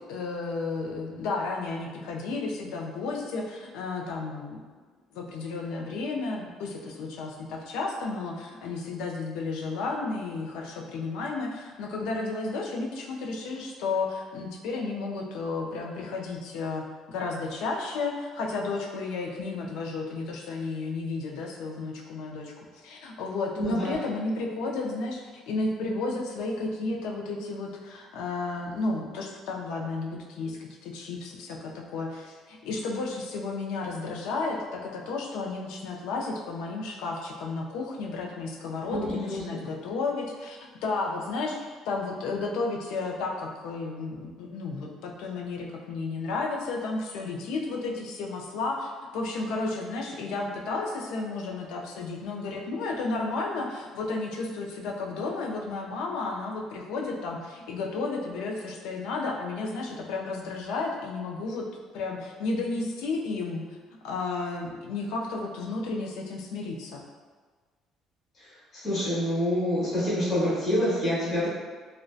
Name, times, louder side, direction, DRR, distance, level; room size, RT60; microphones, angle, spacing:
voice 1, 0.1-4.6 5.1-61.6 61.9-63.6 64.0-67.0, left 3 dB, 85° left, 0 dB, 0.3 m, -32 dB
voice 2, 23.6-24.0 38.9-39.4 68.8-71.5, equal, 30° left, -10 dB, 0.9 m, -26 dB
2.5 x 2.1 x 2.3 m, 1.5 s
cardioid pair, 160°, 0 cm